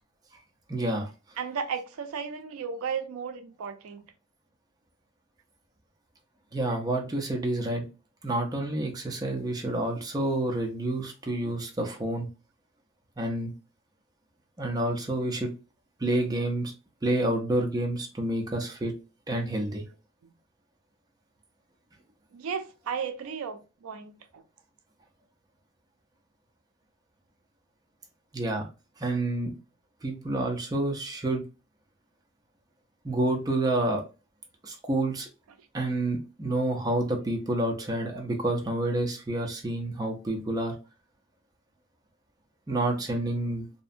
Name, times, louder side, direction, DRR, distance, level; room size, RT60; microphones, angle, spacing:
voice 1, 0.7-1.1 6.5-7.9 8.2-12.3 13.2-13.5 14.6-15.5 16.0-16.7 17.0-18.9 19.3-19.8 28.3-28.7 29.0-29.5 30.0-31.4 33.0-34.0 34.6-35.3 35.7-40.7 42.7-43.7, right 1 dB, 20° right, 0.4 m, -28 dB
voice 2, 1.4-4.0 20.2-20.3 22.3-24.4, right 6 dB, 80° right, 0.4 m, -34 dB
2.6 x 2.0 x 2.4 m
head